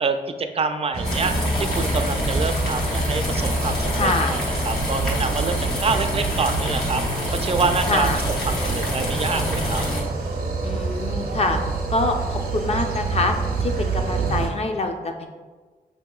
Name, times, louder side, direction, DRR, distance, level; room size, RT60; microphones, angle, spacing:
voice 1, 0.0-7.0 7.3-8.1 8.5-9.8, right 4 dB, 40° right, 7 dB, 0.4 m, -26 dB
sound 1, 0.9-14.5, right 3 dB, 75° right, 0.7 m, -27 dB
sound 2, 1.0-10.0, left 1 dB, 80° left, 0.9 m, -27 dB
voice 2, 3.9-4.4 7.9-8.2 10.6-11.6 11.9-15.3, left 2 dB, 40° left, 4 dB, 0.5 m, -25 dB
5.8 x 2.8 x 2.3 m, 1.4 s
cardioid pair, 60°, 16 cm